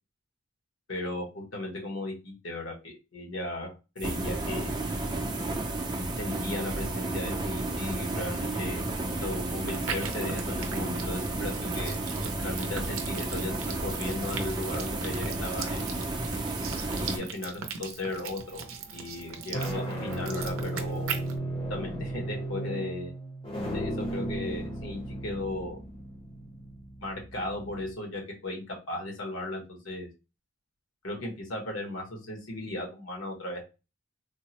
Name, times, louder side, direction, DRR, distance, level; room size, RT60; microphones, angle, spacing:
voice 1, 0.9-4.8 6.2-8.9 9.2-12.0 12.4-15.9 16.9-18.7 18.9-21.2 21.7-23.1 23.7-25.8 27.0-30.1 31.0-33.6, left 2 dB, 75° left, 1 dB, 1.2 m, -36 dB
sound 1, 4.0-17.2, right 2 dB, 20° right, 0.5 m, -32 dB
sound 2, 9.7-21.4, right 6 dB, 80° right, 0.5 m, -40 dB
sound 3, 18.1-18.5 19.3-27.9, right 1 dB, 25° left, 0.7 m, -35 dB
3.6 x 2.0 x 2.8 m, 0.28 s
head